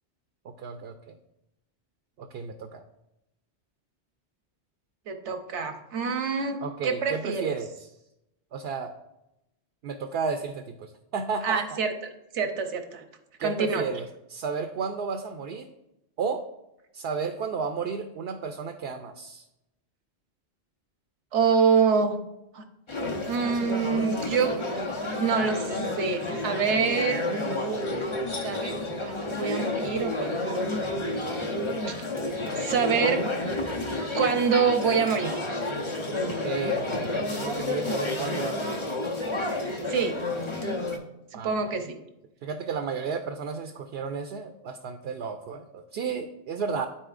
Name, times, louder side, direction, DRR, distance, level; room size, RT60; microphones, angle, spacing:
voice 1, 0.4-1.2 2.2-2.8 6.6-7.7 8.5-8.9 9.8-11.8 13.4-15.7 16.2-16.4 16.9-19.4 36.3-38.8 41.3-41.7 42.4-46.9, right 5 dB, 65° right, 7 dB, 0.8 m, -33 dB
voice 2, 5.1-7.5 11.4-11.9 12.3-13.0 13.4-13.8 21.3-22.2 22.5-22.6 23.3-24.5 25.1-27.2 28.4-30.7 31.9-32.0 32.6-33.2 34.1-35.4 39.9-40.1 41.3-42.0, right 5 dB, 85° right, 6 dB, 1.2 m, -26 dB
sound 1, 22.9-41.0, left 2 dB, 30° left, 0.8 m, -30 dB
13.0 x 4.3 x 2.5 m, 0.88 s
omnidirectional pair, 1.2 m